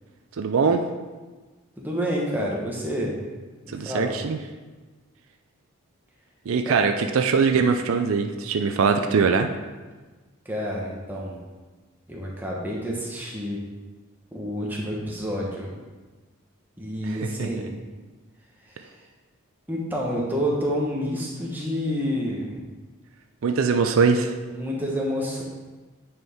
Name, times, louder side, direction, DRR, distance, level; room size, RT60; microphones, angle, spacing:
voice 1, 0.4-0.8 3.7-4.4 6.5-9.5 17.1-17.5 23.4-24.3, right 5 dB, 75° right, 6 dB, 0.4 m, -22 dB
voice 2, 1.8-3.2 3.6-4.2 6.6-6.7 10.4-11.4 12.1-13.6 14.3-15.7 16.8-17.7 18.6-18.9 19.7-22.7 24.5-25.4, equal, 10° right, -3 dB, 1.0 m, -29 dB
9.5 x 4.5 x 3.5 m, 1.3 s
head